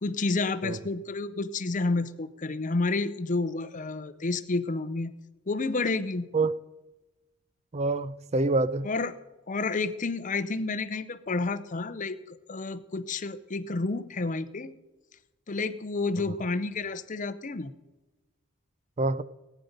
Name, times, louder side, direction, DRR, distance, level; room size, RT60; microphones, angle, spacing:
voice 1, 0.0-5.1 5.5-6.3 8.8-9.1 9.5-14.7 15.5-17.7, left 3 dB, 35° left, 0.6 m, -30 dB
voice 2, 7.7-8.9 19.0-19.2, right 3 dB, 30° right, 0.4 m, -26 dB
18.5 x 9.3 x 5.2 m
head